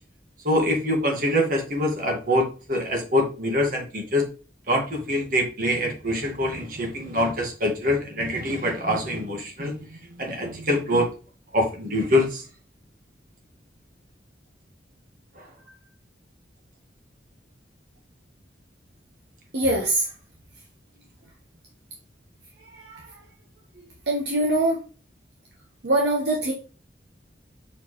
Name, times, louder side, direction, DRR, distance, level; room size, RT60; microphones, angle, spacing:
voice 1, 0.4-4.3 4.7-11.1 11.5-12.4 15.4-15.5, left 1 dB, 50° right, 1 dB, 1.9 m, -24 dB
voice 2, 19.5-20.1 22.7-23.1 24.1-24.8 25.8-26.5, right 1 dB, 65° right, -1 dB, 1.4 m, -23 dB
6.6 x 4.5 x 3.2 m, 0.34 s
head